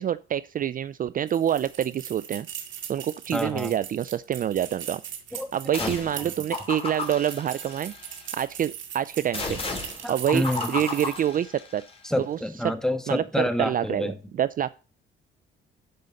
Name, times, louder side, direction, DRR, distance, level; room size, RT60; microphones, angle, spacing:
voice 1, 0.0-2.5 2.9-5.0 5.5-7.9 8.3-9.6 10.1-11.8 12.2-12.7 13.1-14.7, right 10 dB, 45° right, 0.4 m, -27 dB
sound 1, 1.3-11.4, right 9 dB, 70° right, 2.1 m, -40 dB
voice 2, 3.3-3.7 5.3-5.5 5.8-5.9 10.0-10.7 12.0-14.2, left 1 dB, 5° left, 1.5 m, -28 dB
sound 2, 5.7-6.2 6.5-8.3 9.3-11.9, left 4 dB, 30° left, 3.2 m, -34 dB
12.0 x 5.4 x 3.9 m
cardioid pair, 90°, 20 cm